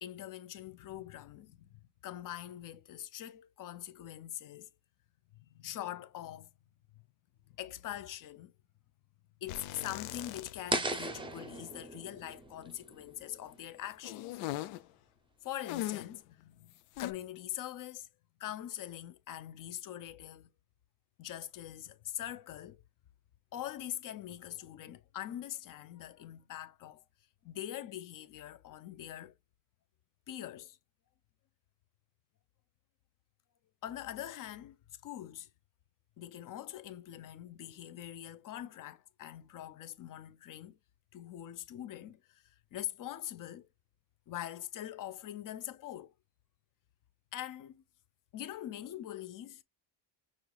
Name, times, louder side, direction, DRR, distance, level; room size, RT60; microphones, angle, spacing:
voice 1, 0.0-4.7 5.4-6.5 7.5-8.5 9.4-14.4 15.4-16.7 17.0-18.1 18.4-20.5 21.2-22.8 23.5-27.0 27.4-29.3 30.3-30.8 33.8-34.8 35.0-35.5 36.2-40.8 41.1-43.7 44.3-46.1 47.3-47.8 48.3-49.6, left 12 dB, 40° left, 0.6 m, -43 dB
sound 1, 9.5-10.9 11.2-11.3 14.0-14.9 15.6-16.2 17.0-17.1, left 15 dB, 85° left, 0.7 m, -40 dB
sound 2, 10.7-13.7, right 2 dB, 10° right, 0.6 m, -37 dB
6.4 x 3.0 x 2.3 m
cardioid pair, 150°, 49 cm